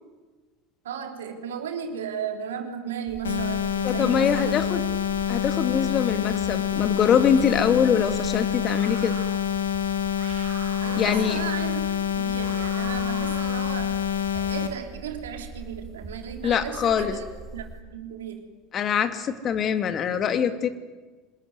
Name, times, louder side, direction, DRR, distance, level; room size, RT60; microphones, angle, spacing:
voice 1, 0.8-4.6 10.8-14.0 14.3-17.2 17.5-18.5, right 8 dB, 80° right, 4 dB, 3.6 m, -35 dB
sound 1, 3.1-17.8, right 3 dB, 25° right, 5.2 m, -42 dB
sound 2, 3.2-14.7, left 9 dB, 85° left, 2.5 m, -27 dB
voice 2, 3.8-4.8 5.3-9.1 11.0-11.4 16.4-17.1 18.7-20.7, left 8 dB, 40° left, 9 dB, 2.5 m, -23 dB
sound 3, 8.6-9.4 10.2-11.5 12.3-13.9, right 11 dB, 55° right, 2.8 m, -42 dB
25.0 x 20.5 x 9.7 m, 1.3 s
hypercardioid pair, 75°, 0 cm